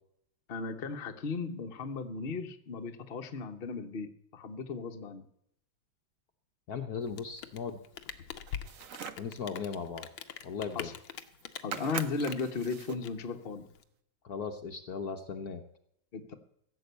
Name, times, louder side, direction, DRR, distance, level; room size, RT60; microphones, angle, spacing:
voice 1, 0.5-5.2 10.7-10.9 11.6-13.7 16.1-16.4, left 4 dB, 35° left, 5 dB, 1.1 m, -36 dB
voice 2, 6.7-7.8 9.2-10.1 10.4-10.9 14.2-15.6, left 6 dB, 60° left, 6 dB, 1.2 m, -37 dB
Rain, 7.0-13.8, left 9 dB, 90° left, 1.8 m, -44 dB
sound 1, 8.5-9.3 10.8-10.9 11.1-11.4 11.7-13.1, right 8 dB, 60° right, 0.9 m, -42 dB
16.0 x 7.8 x 8.1 m, 0.72 s
omnidirectional pair, 2.2 m